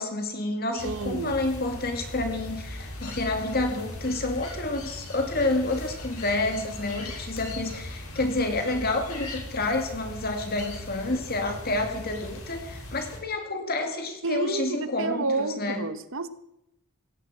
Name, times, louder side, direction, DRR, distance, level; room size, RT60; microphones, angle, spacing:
voice 1, 0.0-15.9, left 2 dB, 45° left, 5 dB, 2.3 m, -29 dB
voice 2, 0.7-1.4 14.2-16.3, right 3 dB, 60° right, 13 dB, 1.0 m, -30 dB
sound 1, 0.8-13.2, left 1 dB, 90° left, 4.3 m, -39 dB
17.0 x 8.0 x 7.7 m, 0.82 s
head